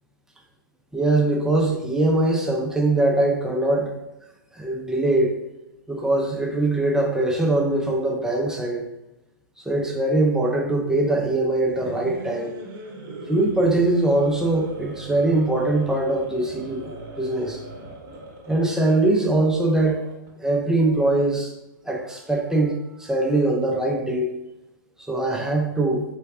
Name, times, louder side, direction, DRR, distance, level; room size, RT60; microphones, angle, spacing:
voice 1, 0.9-3.9 4.5-5.4 5.9-8.8 9.7-12.5 13.3-17.6 18.5-20.0 20.4-21.5 21.9-24.3 25.1-26.0, right 2 dB, 5° right, 0 dB, 0.4 m, -22 dB
sound 1, 11.5-20.3, right 2 dB, 35° right, 0.9 m, -40 dB
3.3 x 3.0 x 2.4 m, 0.93 s
hypercardioid pair, 125°, 12 cm